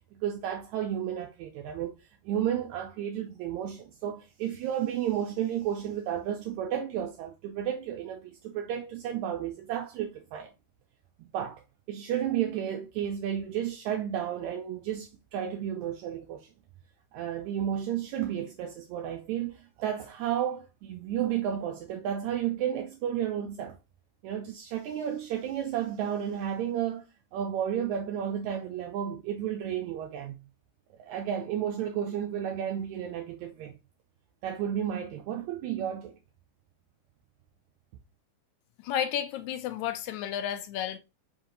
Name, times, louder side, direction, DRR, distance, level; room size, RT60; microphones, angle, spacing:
voice 1, 0.1-1.9 2.2-10.5 11.2-16.5 17.1-23.8 24.2-27.0 27.3-30.3 31.0-33.8 34.4-36.2, right 10 dB, 80° right, 1.8 m, -32 dB
voice 2, 38.8-41.0, left 10 dB, 80° left, 1.9 m, -32 dB
5.0 x 2.7 x 3.7 m
omnidirectional pair, 3.5 m